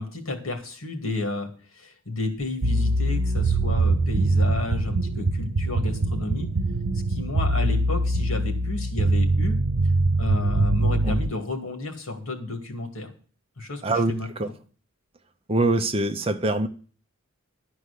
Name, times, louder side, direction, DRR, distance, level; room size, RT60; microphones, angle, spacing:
voice 1, 0.0-6.5 7.1-9.6 10.2-13.1 13.6-14.5, left 2 dB, 75° left, 2.3 m, -32 dB
sound 1, 2.6-11.3, right 2 dB, 75° right, 0.8 m, -23 dB
voice 2, 13.8-14.5 15.5-16.7, right 2 dB, 25° right, 0.7 m, -24 dB
12.0 x 4.7 x 8.4 m
head